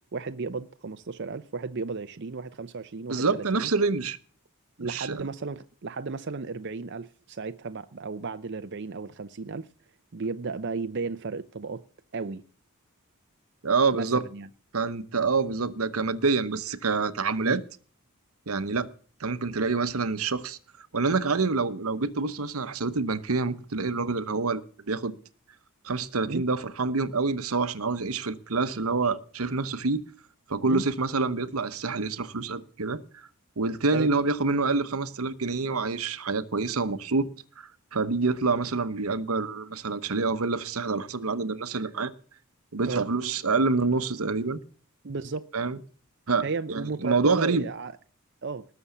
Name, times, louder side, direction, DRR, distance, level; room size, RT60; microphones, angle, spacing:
voice 1, 0.1-3.7 4.8-9.7 10.1-11.8 12.1-12.4 13.9-14.5 17.4-17.6 26.3-26.5 30.7-30.8 33.9-34.1 42.9-43.0 45.0-45.5 46.4-47.9 48.4-48.7, right 4 dB, 50° right, 0.6 m, -34 dB
voice 2, 3.1-4.2 4.8-5.3 13.6-14.2 14.7-17.6 18.5-18.9 19.2-25.1 25.8-30.0 30.5-33.3 33.6-37.3 37.6-42.1 42.7-44.6 45.5-45.8 46.3-47.6, right 4 dB, 75° right, 1.0 m, -27 dB
19.5 x 7.0 x 7.1 m
head